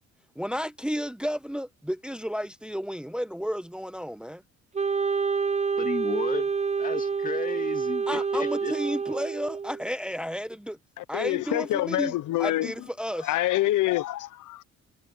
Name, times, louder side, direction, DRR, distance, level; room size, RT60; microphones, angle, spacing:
voice 1, 0.3-4.4 8.1-10.8 11.1-13.3, equal, 5° right, 1.2 m, -32 dB
Wind instrument woodwind instrument, 4.7-9.9, right 5 dB, 20° right, 0.8 m, -28 dB
voice 2, 5.8-6.5 6.8-8.7, left 4 dB, 25° left, 2.7 m, -33 dB
voice 3, 11.0-12.7 13.2-14.6, left 15 dB, 80° left, 0.9 m, -26 dB
cardioid pair, 90°, 30 cm